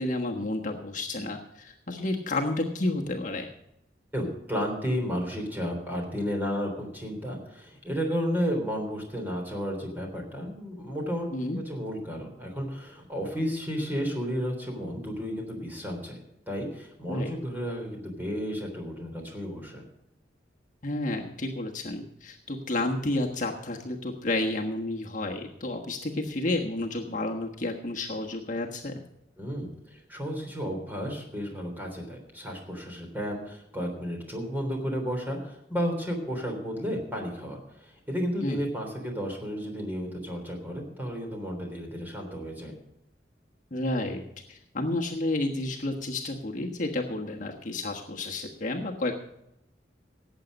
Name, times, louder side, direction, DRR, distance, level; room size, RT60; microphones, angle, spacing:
voice 1, 0.0-3.5 11.3-11.6 17.1-17.3 20.8-29.0 38.4-38.6 43.7-44.2 44.5-49.1, left 2 dB, 45° left, 1 dB, 1.3 m, -31 dB
voice 2, 4.1-11.3 11.5-16.2 16.5-19.8 29.4-42.7, equal, 10° right, 1 dB, 3.5 m, -32 dB
18.0 x 8.0 x 5.3 m, 0.83 s
head